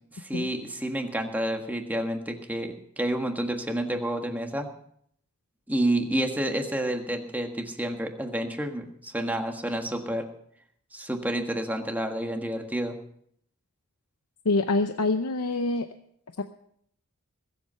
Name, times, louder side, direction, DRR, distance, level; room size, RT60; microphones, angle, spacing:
voice 1, 0.1-4.7 5.7-10.2 10.9-12.9, right 1 dB, 5° right, 3 dB, 1.5 m, -29 dB
voice 2, 14.4-15.9 16.4-16.5, left 3 dB, 90° left, 8 dB, 0.8 m, -25 dB
21.0 x 8.0 x 5.6 m, 0.68 s
head